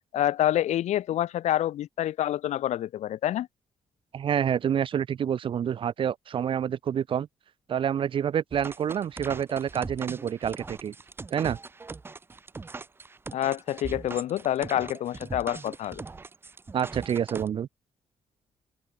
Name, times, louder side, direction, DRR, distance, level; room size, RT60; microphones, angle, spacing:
voice 1, 0.1-3.5 13.3-16.0, left 12 dB, 80° left, 1.6 m, -27 dB
voice 2, 4.1-7.3 7.7-10.9 11.3-11.6 16.7-17.7, right 8 dB, 45° right, 1.7 m, -28 dB
sound 1, 8.5-17.5, right 4 dB, 20° right, 2.2 m, -40 dB
open air
wide cardioid pair, 175°, 12 cm